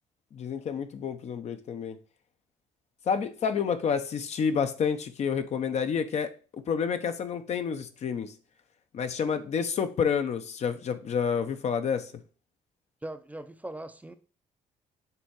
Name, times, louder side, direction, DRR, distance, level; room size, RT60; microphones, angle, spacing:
voice 1, 0.3-2.0 3.1-8.3 8.9-12.1, left 6 dB, 55° left, 0.8 m, -29 dB
voice 2, 13.0-14.1, right 1 dB, 10° right, 0.6 m, -40 dB
6.9 x 3.5 x 4.7 m
cardioid pair, 90°, 14 cm